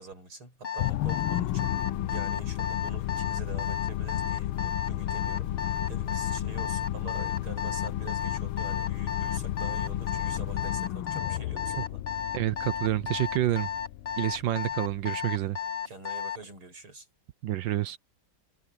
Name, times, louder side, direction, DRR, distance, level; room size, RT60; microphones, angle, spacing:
voice 1, 0.0-12.0 15.9-17.1, right 3 dB, 85° right, 8.5 m, -45 dB
Alarm, 0.6-16.4, left 8 dB, 30° left, 1.5 m, -33 dB
sound 1, 0.8-15.3, left 14 dB, 90° left, 1.6 m, -33 dB
sound 2, 1.0-11.0, left 10 dB, 70° left, 3.9 m, -51 dB
voice 2, 12.3-13.7 14.2-15.6 17.4-18.0, right 14 dB, 70° right, 1.3 m, -28 dB
omnidirectional pair, 2.3 m